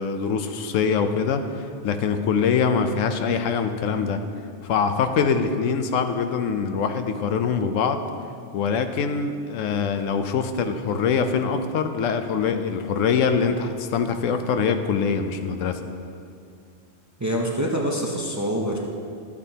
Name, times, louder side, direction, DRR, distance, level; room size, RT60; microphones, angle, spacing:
voice 1, 0.0-4.2 4.6-8.0 8.5-15.8, left 6 dB, 80° left, 8 dB, 1.0 m, -24 dB
voice 2, 17.2-18.8, equal, 20° right, -1 dB, 0.6 m, -25 dB
12.5 x 8.5 x 2.8 m, 2.4 s
omnidirectional pair, 1.3 m